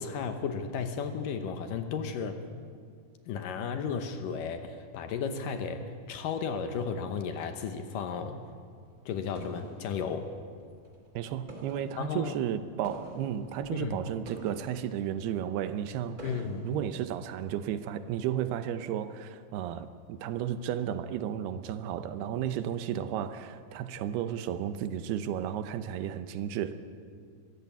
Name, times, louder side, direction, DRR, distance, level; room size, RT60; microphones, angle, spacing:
voice 1, 0.0-2.4 3.3-8.4 9.1-10.3 12.0-12.4 13.7-14.0 16.2-16.7, left 6 dB, 70° left, 7 dB, 2.4 m, -34 dB
sound 1, 8.4-11.1 11.4-17.3, right 1 dB, 30° right, 2.2 m, -48 dB
voice 2, 11.1-16.3 16.6-26.7, right 10 dB, 90° right, 11 dB, 2.9 m, -33 dB
22.5 x 15.0 x 8.3 m, 2.1 s
omnidirectional pair, 4.5 m